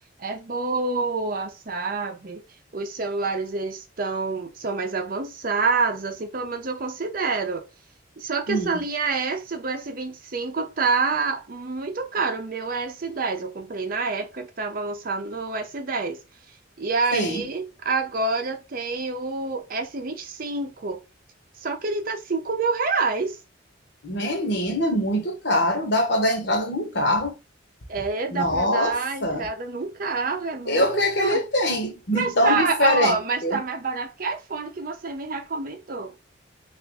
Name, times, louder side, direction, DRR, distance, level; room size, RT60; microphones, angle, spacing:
voice 1, 0.2-2.4 2.7-7.7 8.2-16.2 16.8-21.0 21.6-23.4 27.9-30.9 31.2-31.4 32.1-36.1, right 4 dB, 50° right, 0.6 m, -27 dB
voice 2, 8.5-8.8 17.1-17.5 24.0-27.3 28.3-29.5 30.7-33.6, left 1 dB, 60° left, 1.0 m, -23 dB
3.4 x 2.5 x 3.4 m
head